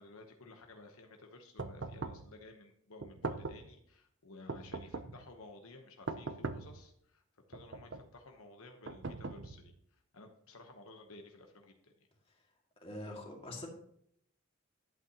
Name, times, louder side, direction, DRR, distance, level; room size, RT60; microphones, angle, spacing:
voice 1, 0.0-7.2 7.5-9.7 10.1-11.9, left 2 dB, 75° left, 3 dB, 1.0 m, -54 dB
sound 1, 1.6-2.3 3.0-3.7 4.5-5.2 6.1-6.8 7.5-8.1 8.9-9.7, right 3 dB, 55° right, 0.6 m, -41 dB
voice 2, 12.8-13.7, left 1 dB, 25° left, 0 dB, 2.1 m, -44 dB
11.5 x 8.2 x 2.9 m, 0.69 s
head